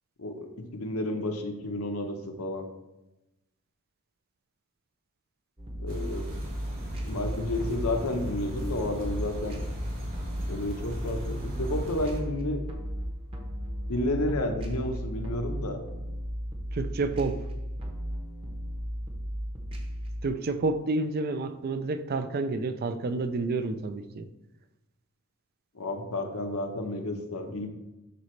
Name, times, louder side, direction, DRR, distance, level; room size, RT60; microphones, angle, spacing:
voice 1, 0.2-2.7 5.8-6.3 7.0-9.6 10.5-12.6 13.9-15.8 25.7-27.7, left 1 dB, 85° left, 0.9 m, -31 dB
sound 1, 5.6-20.3, equal, 25° right, 1.0 m, -35 dB
sound 2, 5.9-12.2, equal, 60° right, 2.7 m, -38 dB
voice 2, 16.7-17.5 20.2-24.3, right 3 dB, 45° right, 0.4 m, -29 dB
11.0 x 4.0 x 3.2 m
head